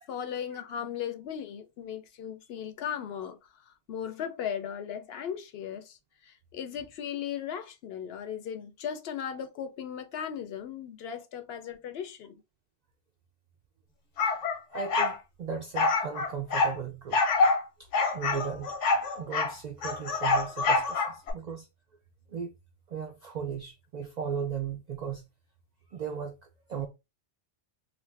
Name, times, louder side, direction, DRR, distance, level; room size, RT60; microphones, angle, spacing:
voice 1, 0.1-12.4, left 8 dB, 65° left, 0.7 m, -37 dB
sound 1, 14.2-15.2 15.8-16.7 17.1-17.6 17.9-19.5 19.8-21.3, left 3 dB, 85° left, 1.1 m, -26 dB
voice 2, 14.7-17.2 17.8-18.7 19.1-21.7 22.3-22.5 22.9-25.2 25.9-26.4 26.7-26.9, right 7 dB, 65° right, 0.4 m, -36 dB
2.5 x 2.5 x 3.2 m
omnidirectional pair, 1.2 m